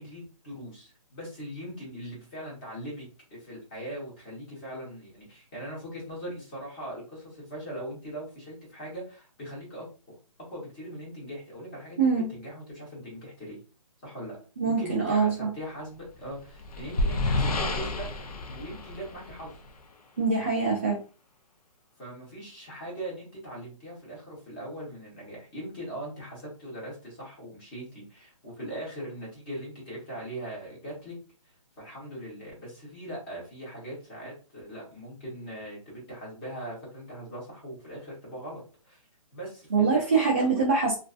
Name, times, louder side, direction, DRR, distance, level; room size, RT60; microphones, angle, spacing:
voice 1, 0.0-10.2 10.5-13.6 14.0-14.4 14.6-19.5 22.0-31.2 31.8-39.0 39.3-40.7, right 1 dB, 15° left, -4 dB, 0.9 m, -40 dB
voice 2, 12.0-12.3 14.6-15.5 20.2-21.0 39.7-40.9, right 4 dB, 20° right, -5 dB, 0.4 m, -24 dB
sound 1, 16.1-19.8, left 2 dB, 85° left, 0.6 m, -30 dB
2.4 x 2.4 x 2.4 m, 0.35 s
hypercardioid pair, 175°, 19 cm